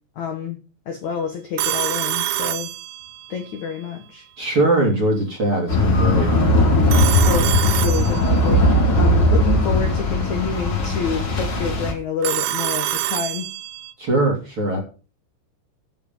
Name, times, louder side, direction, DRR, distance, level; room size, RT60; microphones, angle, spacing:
voice 1, 0.1-0.6 0.8-2.7 3.3-4.2 7.2-13.5, left 6 dB, 70° left, 4 dB, 1.8 m, -28 dB
Telephone, 1.6-3.4 6.9-8.6 12.2-13.9, right 14 dB, 75° right, 3.1 m, -26 dB
voice 2, 4.4-6.3 14.0-14.8, right 2 dB, 35° right, 1 dB, 3.0 m, -21 dB
sound 1, 5.7-11.9, left 1 dB, 35° left, 2.5 m, -18 dB
10.0 x 7.5 x 7.2 m, 0.36 s
omnidirectional pair, 5.8 m